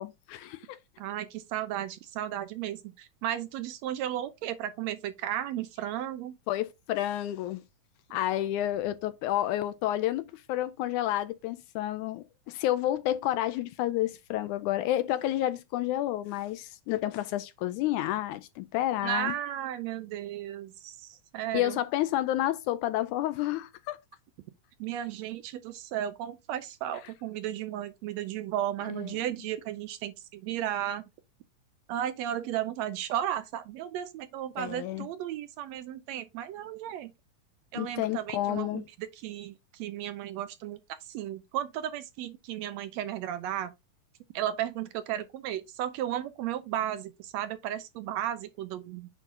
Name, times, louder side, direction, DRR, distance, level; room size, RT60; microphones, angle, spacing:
voice 1, 0.0-0.8 6.5-7.6 8.1-19.3 21.5-24.0 28.9-29.2 34.6-35.1 37.8-38.8, left 14 dB, 80° left, 1.9 m, -30 dB
voice 2, 1.0-6.4 19.0-21.8 24.8-31.0 31.9-37.1 37.7-43.7 44.3-49.1, right 11 dB, 80° right, 1.6 m, -34 dB
9.1 x 3.8 x 3.7 m
omnidirectional pair, 3.6 m